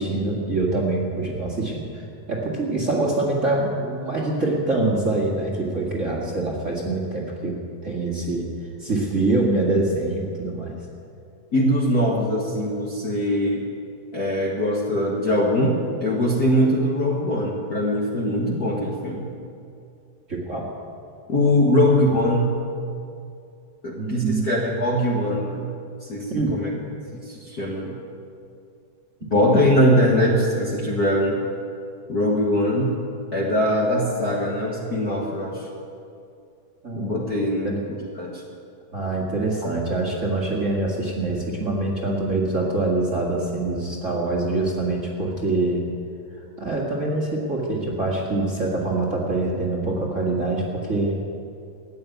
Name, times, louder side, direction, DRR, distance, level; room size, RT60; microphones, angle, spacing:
voice 1, 0.0-2.0 2.3-8.5 8.8-10.8 20.3-20.7 23.9-24.4 26.3-26.5 36.8-37.1 37.6-37.8 38.9-45.8 46.6-51.2, right 2 dB, 30° right, -3 dB, 1.8 m, -24 dB
voice 2, 11.5-13.6 14.1-19.3 21.3-22.6 23.8-25.7 26.0-26.7 27.1-28.0 29.2-31.4 32.1-33.0 33.3-35.6 36.9-37.8 38.1-38.4, equal, 40° left, -3 dB, 1.5 m, -22 dB
14.5 x 9.6 x 9.2 m, 2.5 s
omnidirectional pair, 3.3 m